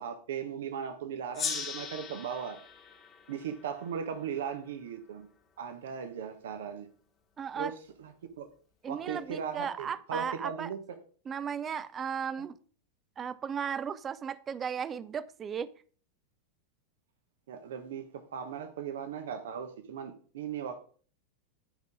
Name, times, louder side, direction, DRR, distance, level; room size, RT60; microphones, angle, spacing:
voice 1, 0.0-2.6 3.3-5.3 5.6-6.9 7.6-8.5 8.9-10.8 12.4-12.5 17.5-20.8, right 7 dB, 60° right, 1.0 m, -38 dB
Gong, 1.3-4.5, left 6 dB, 30° left, 1.4 m, -39 dB
voice 2, 7.4-7.7 8.8-10.7 11.3-12.6 13.2-15.7, right 7 dB, 25° right, 0.5 m, -35 dB
10.5 x 5.4 x 4.7 m
figure-of-eight pair, 90°, 0 cm